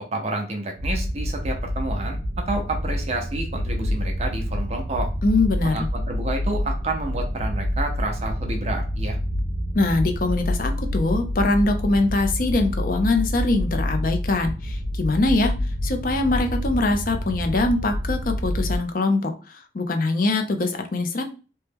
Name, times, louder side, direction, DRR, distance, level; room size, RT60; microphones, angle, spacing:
voice 1, 0.1-2.2 2.5-5.1 5.6-9.2, right 2 dB, 35° right, 2 dB, 0.5 m, -29 dB
sound 1, 0.8-18.8, equal, 75° right, 0.7 m, -27 dB
voice 2, 5.2-5.9 9.7-15.5 15.8-21.2, left 2 dB, 50° left, 6 dB, 0.5 m, -23 dB
2.9 x 2.1 x 3.4 m, 0.34 s
head